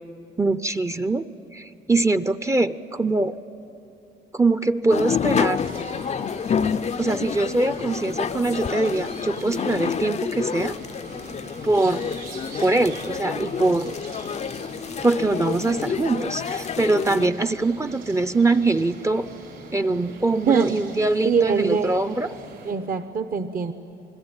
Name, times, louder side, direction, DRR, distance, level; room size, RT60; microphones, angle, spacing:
voice 1, 0.4-1.2 1.5-3.4 4.3-5.6 7.0-10.7 11.6-12.1 12.6-13.9 15.0-19.3 19.7-22.4, right 2 dB, 15° right, 12 dB, 0.6 m, -23 dB
sound 1, 4.9-17.3, left 7 dB, 35° left, 0.5 m, -28 dB
sound 2, 5.5-22.7, right 3 dB, 80° right, 5.7 m, -42 dB
voice 2, 21.2-22.0 22.7-23.7, right 6 dB, 45° right, 9 dB, 0.9 m, -22 dB
27.0 x 20.5 x 8.9 m, 2.8 s
cardioid pair, 90°, 20 cm